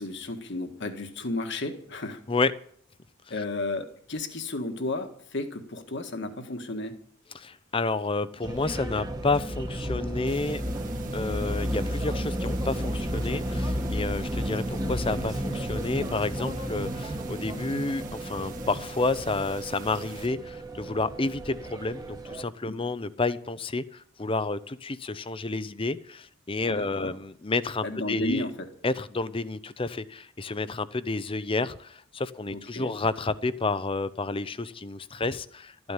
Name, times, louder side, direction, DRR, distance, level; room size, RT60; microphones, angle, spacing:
voice 1, 0.0-2.2 3.3-7.0 22.7-22.8 26.7-27.1 27.8-28.5 32.5-32.9, left 2 dB, 55° left, 7 dB, 1.7 m, -33 dB
voice 2, 7.3-10.6 11.1-28.4 28.8-35.9, left 3 dB, 25° left, 15 dB, 0.6 m, -30 dB
sound 1, 8.4-22.4, equal, 20° right, 1.2 m, -32 dB
sound 2, 10.3-20.3, right 5 dB, 40° right, 1.8 m, -47 dB
13.5 x 9.6 x 8.9 m, 0.63 s
head